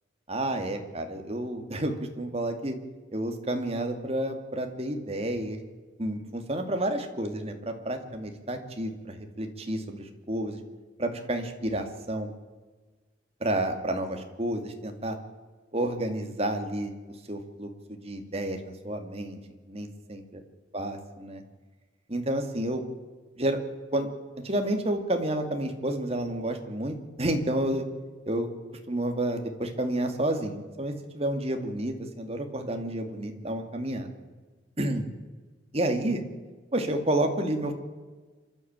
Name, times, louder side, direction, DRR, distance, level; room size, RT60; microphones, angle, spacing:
voice 1, 0.3-2.8 3.1-5.6 6.0-10.6 11.0-12.3 13.4-15.2 15.7-16.9 17.3-19.4 19.7-20.4 20.7-21.4 22.1-22.8 23.4-23.6 23.9-24.1 24.4-27.8 28.3-28.5 28.9-34.1 34.8-35.0 35.7-36.2 36.7-37.7, right 1 dB, 30° right, 5 dB, 2.4 m, -30 dB
26.5 x 12.5 x 8.9 m, 1.4 s
head